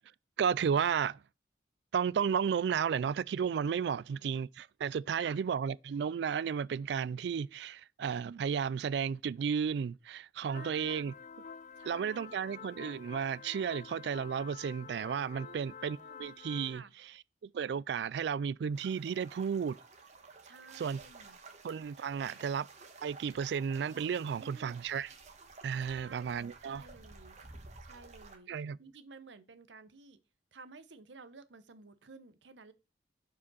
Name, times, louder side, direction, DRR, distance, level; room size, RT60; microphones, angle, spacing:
voice 1, 0.4-1.2 1.9-11.1 11.9-16.8 17.4-19.8 20.8-21.0 21.6-22.7 23.0-25.1 25.6-26.8 28.5-28.8, right 7 dB, 65° right, 0.3 m, -33 dB
voice 2, 10.4-11.2 11.8-12.4 15.3-16.3 16.7-16.9 20.4-21.4 22.2-22.4 24.4-24.8 25.8-27.4 27.8-28.5 28.8-30.2 30.5-32.7, right 4 dB, 85° right, 0.9 m, -53 dB
sound 1, 10.5-16.8, left 6 dB, 40° left, 0.3 m, -49 dB
sound 2, 18.7-28.4, right 3 dB, 40° right, 1.3 m, -53 dB
7.0 x 5.1 x 4.0 m
head